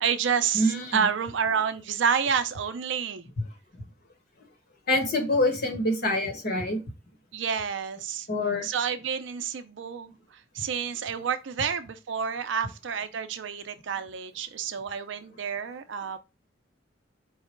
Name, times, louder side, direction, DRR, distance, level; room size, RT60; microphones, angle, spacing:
voice 1, 0.0-3.2 7.3-8.3 8.6-10.1 10.5-16.2, right 7 dB, 75° right, 0.5 m, -29 dB
voice 2, 0.5-1.1 4.9-6.8 8.3-8.7, left 1 dB, 55° left, 1.2 m, -25 dB
4.7 x 2.2 x 4.3 m
head